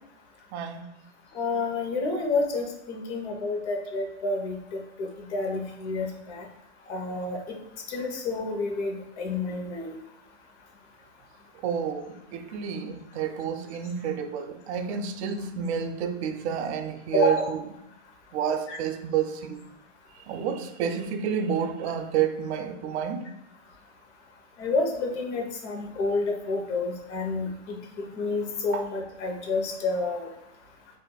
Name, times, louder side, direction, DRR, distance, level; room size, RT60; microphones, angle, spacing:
voice 1, 0.5-0.9 11.6-17.6 18.3-19.6 20.3-23.2 28.7-28.8, right 8 dB, 70° right, 0.5 m, -29 dB
voice 2, 1.3-6.4 6.9-7.4 7.9-10.0 17.1-17.5 18.7-18.8 24.6-30.3, left 3 dB, 75° left, 0.9 m, -29 dB
3.8 x 2.5 x 2.2 m
supercardioid pair, 180°, 34 cm